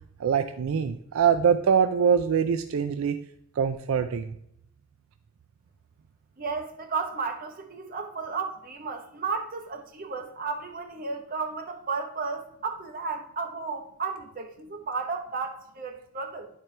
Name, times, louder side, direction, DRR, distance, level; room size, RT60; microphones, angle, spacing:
voice 1, 0.2-3.2 3.6-4.3, right 7 dB, 70° right, 0.3 m, -23 dB
voice 2, 6.4-16.5, right 4 dB, 40° right, 0.9 m, -33 dB
10.5 x 4.4 x 3.2 m
head